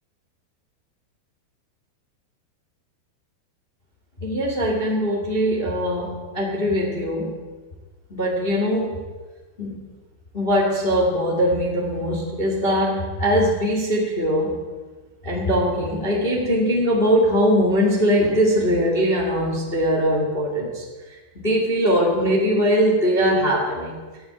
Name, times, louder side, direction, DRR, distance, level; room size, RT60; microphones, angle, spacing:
voice 1, 4.2-7.3 8.1-9.0 9.6-9.8 10.3-14.6 15.2-20.8 21.4-23.9, equal, 85° left, -1 dB, 0.5 m, -21 dB
14.0 x 10.0 x 8.9 m, 1.4 s
omnidirectional pair, 5.3 m